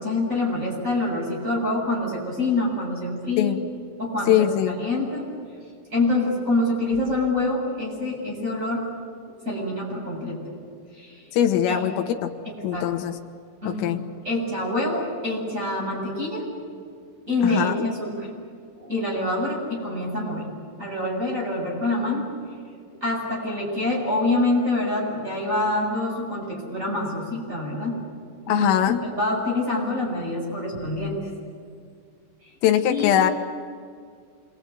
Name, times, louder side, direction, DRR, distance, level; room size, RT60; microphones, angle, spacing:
voice 1, 0.0-3.6 4.0-5.3 5.9-8.8 9.5-10.4 11.0-11.3 11.7-12.0 12.7-12.9 13.6-14.0 14.2-16.5 17.3-18.3 18.8-20.5 20.8-22.3 23.0-28.0 28.4-31.2 32.4-32.5 32.9-33.1, left 2 dB, 15° right, -1 dB, 7.4 m, -26 dB
voice 2, 4.3-4.8 11.3-12.3 12.6-13.2 13.7-14.0 17.4-17.8 28.5-29.0 32.6-33.3, left 11 dB, 85° left, 4 dB, 3.8 m, -21 dB
27.5 x 23.0 x 9.0 m, 2.2 s
omnidirectional pair, 5.9 m